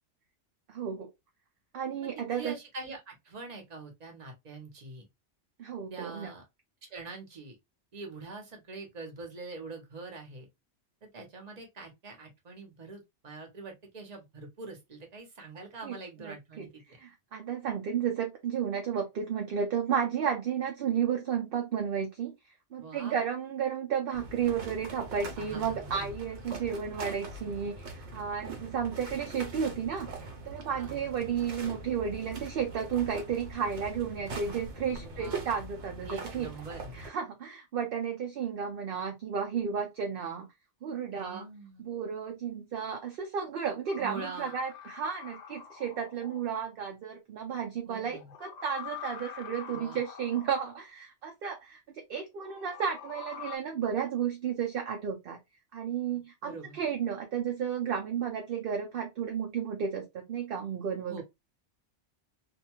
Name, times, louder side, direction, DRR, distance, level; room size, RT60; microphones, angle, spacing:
voice 1, 0.7-1.1 1.7-2.5 5.6-6.3 15.8-22.3 22.7-30.2 30.4-36.5 36.9-40.5 40.8-41.4 41.8-55.4 55.7-61.2, right 7 dB, 60° right, 0.7 m, -33 dB
voice 2, 2.1-5.1 5.9-6.4 6.9-7.6 7.9-10.5 11.0-16.8 22.8-23.2 25.4-26.1 30.8-31.1 35.0-35.4 36.0-36.9 41.1-41.9 44.0-44.6 47.9-48.3 49.7-50.0 56.4-56.8 61.1-61.2, right 3 dB, 40° right, 0.9 m, -44 dB
sound 1, 24.1-37.1, right 2 dB, 75° right, 1.1 m, -42 dB
sound 2, 43.9-46.4 48.2-50.8 52.4-53.6, left 8 dB, 50° left, 0.6 m, -45 dB
2.6 x 2.2 x 2.9 m
omnidirectional pair, 1.2 m